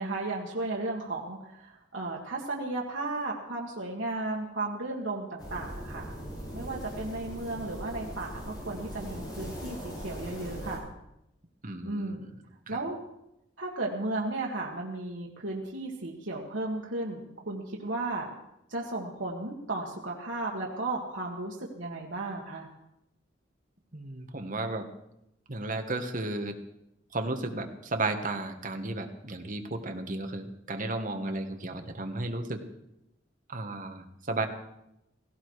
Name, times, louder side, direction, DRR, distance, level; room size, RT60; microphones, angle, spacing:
voice 1, 0.0-6.1 6.5-10.9 11.8-12.3 12.7-13.0 13.6-18.3 18.7-22.7, right 2 dB, 80° right, -2 dB, 1.9 m, -34 dB
sound 1, 5.4-10.8, equal, 25° left, 7.7 m, -40 dB
voice 2, 11.6-12.3 12.7-12.8 23.9-24.9 25.5-26.6 27.1-32.6 33.5-34.5, right 2 dB, 45° right, 5 dB, 1.6 m, -34 dB
17.0 x 16.5 x 4.8 m, 0.85 s
head